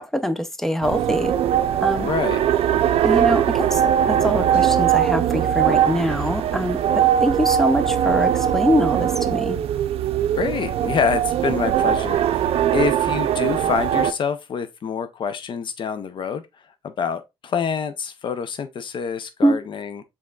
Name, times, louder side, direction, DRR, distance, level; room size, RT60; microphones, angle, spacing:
voice 1, 0.0-1.3 1.8-2.1 3.0-9.6 19.4-19.6, equal, 5° left, 0.5 m, -23 dB
sound 1, 0.8-14.1, right 10 dB, 85° right, 0.5 m, -20 dB
voice 2, 2.0-2.4 10.3-12.5 12.7-16.4 16.8-20.0, left 6 dB, 55° left, 0.5 m, -26 dB
5.2 x 3.5 x 2.3 m
cardioid pair, 135°, 10 cm